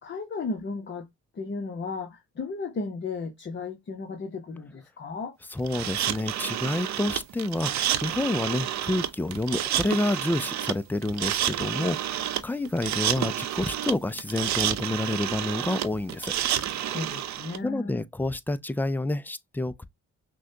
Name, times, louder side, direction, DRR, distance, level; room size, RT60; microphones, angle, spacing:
voice 1, 0.0-1.1 1.3-5.4 16.8-18.0, left 3 dB, 40° left, 0.9 m, -34 dB
voice 2, 5.5-16.3 17.6-19.9, left 2 dB, 5° left, 0.4 m, -29 dB
sound 1, 5.7-17.6, right 11 dB, 65° right, 0.6 m, -29 dB
6.1 x 2.2 x 2.7 m
cardioid pair, 90°, 30 cm